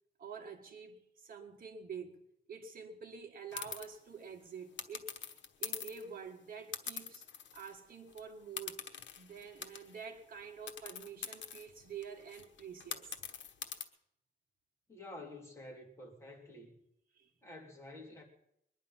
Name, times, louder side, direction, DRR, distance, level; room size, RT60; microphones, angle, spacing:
voice 1, 0.2-2.2 2.5-5.1 5.6-7.2 7.5-8.8 9.2-13.1 17.2-17.3, right 6 dB, 50° right, 1.9 m, -47 dB
sound 1, 3.5-3.9 4.8-6.1 6.7-7.8 8.1-8.2 8.6-10.0 10.7-13.8, left 8 dB, 75° left, 1.2 m, -44 dB
voice 2, 14.9-16.8 17.4-18.2, left 1 dB, 15° left, 2.9 m, -50 dB
22.0 x 10.5 x 5.7 m
wide cardioid pair, 175°, 19 cm